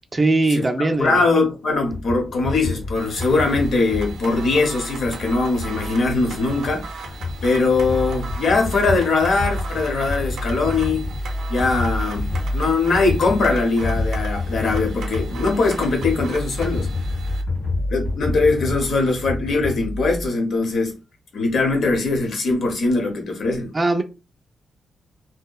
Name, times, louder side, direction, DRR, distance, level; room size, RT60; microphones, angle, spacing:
voice 1, 0.1-1.2 23.7-24.0, right 2 dB, 20° right, 0.4 m, -20 dB
voice 2, 1.0-7.1 7.4-11.0 11.5-16.9 17.3-17.4 17.9-21.0 21.3-23.7, left 3 dB, 70° left, 0.8 m, -21 dB
sound 1, 1.9-20.3, left 2 dB, 90° left, 1.3 m, -28 dB
sound 2, 3.0-17.4, right 4 dB, 90° right, 0.5 m, -38 dB
2.7 x 2.0 x 2.3 m
wide cardioid pair, 125°, 0 cm